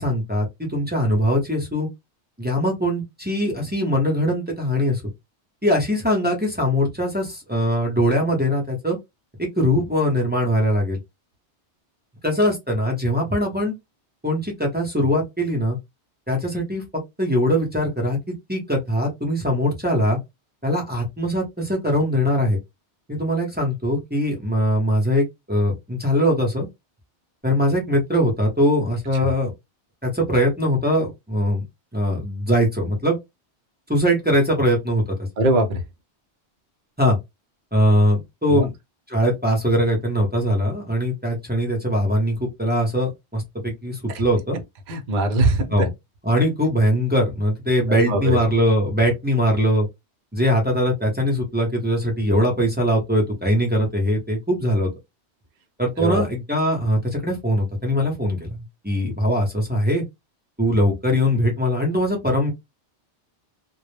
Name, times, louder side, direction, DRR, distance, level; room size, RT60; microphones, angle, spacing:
voice 1, 0.0-1.9 2.4-5.0 5.6-9.0 9.4-11.0 12.2-13.7 14.2-15.8 16.3-16.8 17.2-18.2 18.5-20.2 20.6-22.6 23.1-26.7 27.4-29.5 30.0-31.6 31.9-33.2 33.9-35.0 37.0-37.2 37.7-38.7 39.1-44.6 45.7-45.9 46.2-49.9 50.3-54.9 55.8-58.6 58.8-60.0 60.6-62.5, equal, 10° right, 0.5 m, -21 dB
voice 2, 35.4-35.8 38.5-38.7 44.1-44.2 44.9-45.9 48.0-48.4 56.0-56.2, right 2 dB, 50° right, 0.6 m, -21 dB
2.1 x 2.0 x 3.1 m
omnidirectional pair, 1.2 m